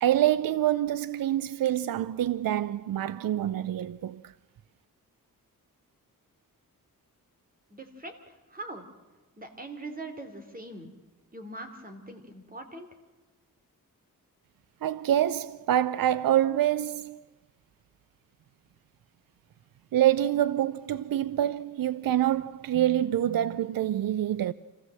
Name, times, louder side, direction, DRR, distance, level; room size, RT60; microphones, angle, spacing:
voice 1, 0.0-4.2 14.8-17.2 19.9-24.5, right 12 dB, 75° right, 0.6 m, -26 dB
voice 2, 7.7-8.8 9.4-10.9 11.3-12.9, right 2 dB, 25° right, 3.0 m, -42 dB
25.5 x 16.5 x 7.7 m
wide cardioid pair, 135°, 35 cm